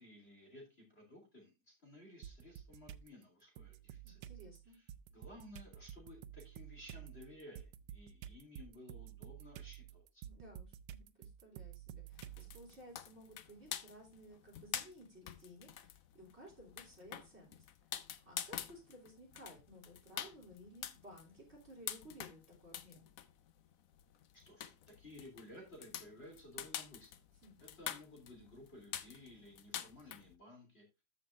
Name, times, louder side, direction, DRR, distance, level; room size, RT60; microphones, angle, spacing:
voice 1, 0.0-4.2 4.7-10.2 24.5-27.1 27.6-30.8, left 1 dB, 30° left, 0 dB, 3.3 m, -56 dB
sound 1, 2.2-3.1 3.6-12.8, right 11 dB, 85° right, 1.5 m, -51 dB
voice 2, 4.0-4.8 10.2-23.1 27.4-27.5, equal, 30° right, -1 dB, 3.4 m, -57 dB
sound 2, 12.1-30.3, left 10 dB, 75° left, 0.7 m, -47 dB
14.0 x 6.0 x 2.5 m, 0.25 s
omnidirectional pair, 2.3 m